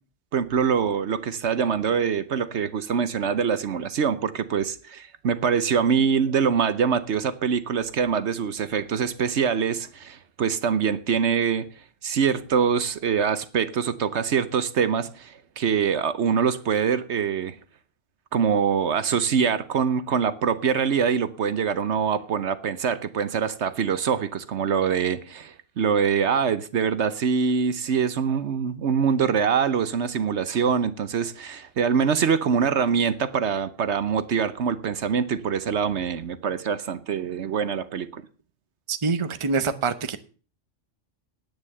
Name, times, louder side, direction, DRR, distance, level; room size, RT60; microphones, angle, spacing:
voice 1, 0.3-11.7 12.0-17.5 18.3-38.2, right 6 dB, 65° right, 1.1 m, -24 dB
voice 2, 38.9-40.2, right 4 dB, 25° right, 0.8 m, -25 dB
10.5 x 9.2 x 6.6 m
omnidirectional pair, 1.3 m